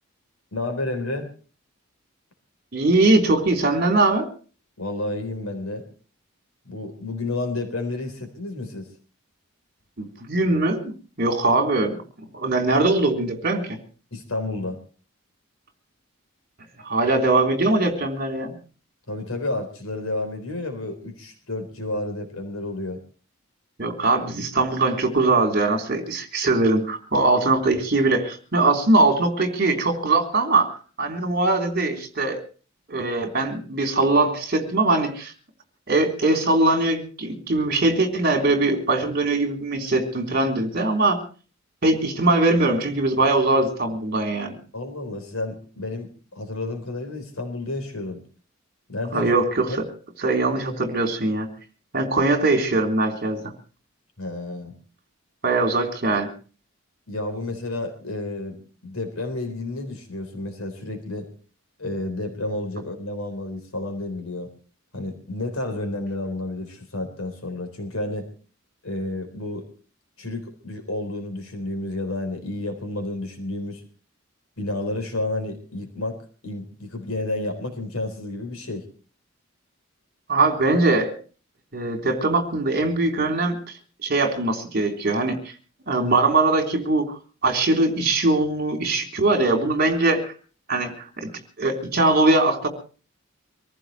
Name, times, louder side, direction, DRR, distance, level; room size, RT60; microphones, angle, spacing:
voice 1, 0.5-1.3 4.8-5.8 6.7-8.9 14.1-14.8 19.1-23.0 44.7-48.2 48.9-49.3 49.7-49.8 54.2-54.7 57.1-58.6 58.8-61.3 61.8-64.5 64.9-68.3 68.8-69.7 70.2-73.8 74.6-78.9, left 2 dB, 85° left, 6 dB, 3.9 m, -30 dB
voice 2, 2.7-4.3 10.0-10.9 11.2-12.0 12.3-13.8 16.8-18.5 23.8-30.7 31.0-32.4 32.9-35.3 35.9-41.2 41.8-44.5 49.1-49.8 50.2-51.5 51.9-53.4 55.4-56.3 80.3-81.1 81.7-83.6 84.0-85.4 85.9-87.1 87.4-90.3 90.7-91.3 91.6-92.7, right 2 dB, 45° right, 4 dB, 3.6 m, -21 dB
25.0 x 15.0 x 3.2 m, 0.38 s
head